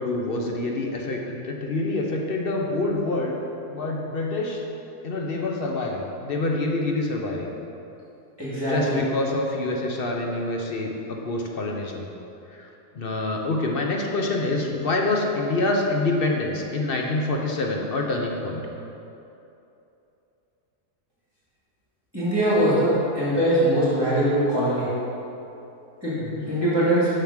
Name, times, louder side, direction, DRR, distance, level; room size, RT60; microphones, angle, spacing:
voice 1, 0.0-3.4 3.7-4.6 5.0-7.5 8.5-12.1 12.5-12.7 12.9-18.7 26.2-26.5, left 2 dB, 45° left, 1 dB, 0.8 m, -26 dB
voice 2, 8.4-9.0 22.1-24.9 26.0-26.2 26.5-27.1, right 1 dB, 15° right, -11 dB, 2.2 m, -22 dB
7.0 x 5.8 x 6.3 m, 2.8 s
omnidirectional pair, 1.6 m